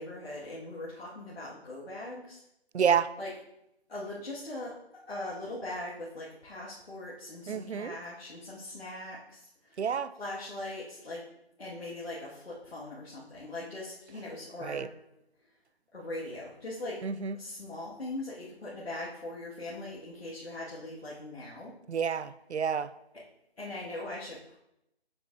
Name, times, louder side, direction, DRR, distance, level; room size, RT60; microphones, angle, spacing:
voice 1, 0.0-2.4 3.2-3.3 3.9-4.8 5.1-9.8 10.2-11.3 11.6-14.9 15.9-17.0 17.4-21.7 23.6-24.6, left 2 dB, 70° left, -6 dB, 1.8 m, -40 dB
voice 2, 2.7-3.1 7.5-8.0 9.8-10.1 14.6-14.9 17.0-17.4 21.9-22.9, right 7 dB, 85° right, 14 dB, 0.5 m, -29 dB
7.2 x 6.8 x 2.6 m, 0.82 s
figure-of-eight pair, 170°, 33 cm